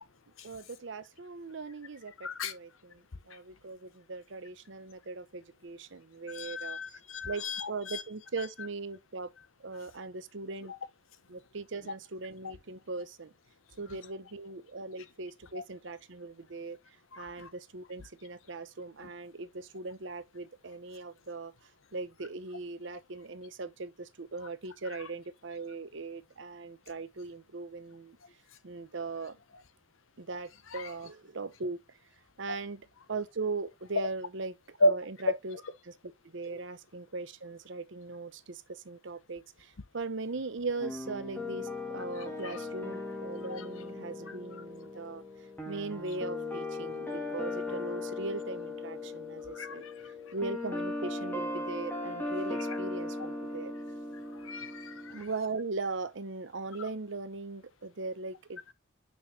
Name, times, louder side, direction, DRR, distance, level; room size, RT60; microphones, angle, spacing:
voice 1, 0.4-6.8 7.2-9.3 9.6-10.7 11.3-13.3 13.8-16.8 17.2-21.5 21.9-28.2 28.6-29.4 30.2-31.8 32.4-34.5 34.8-35.6 35.8-35.9 36.3-45.2 45.6-49.9 50.3-53.7 55.1-58.7, right 3 dB, 65° right, 0.8 m, -39 dB
voice 2, 2.2-2.5 6.3-8.0 12.4-12.5 15.5-15.6 17.1-17.5 30.7-30.9 34.8-34.9 42.2-42.6 43.5-43.7 44.3-44.4 49.5-50.1 52.7-52.8 54.3-55.3, left 1 dB, 90° left, 0.9 m, -33 dB
sound 1, 40.8-55.2, left 2 dB, 10° left, 1.9 m, -38 dB
6.2 x 6.0 x 2.7 m
head